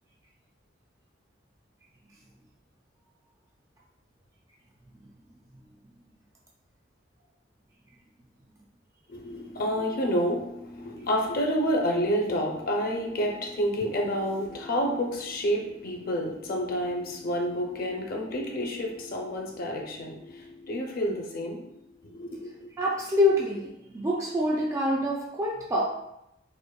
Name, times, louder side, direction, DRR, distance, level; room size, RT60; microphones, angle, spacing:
voice 1, 9.1-21.7 22.0-22.7, equal, 50° left, 1 dB, 0.6 m, -29 dB
voice 2, 22.8-25.9, left 1 dB, 15° right, -2 dB, 0.3 m, -26 dB
5.1 x 2.1 x 2.3 m, 0.83 s
head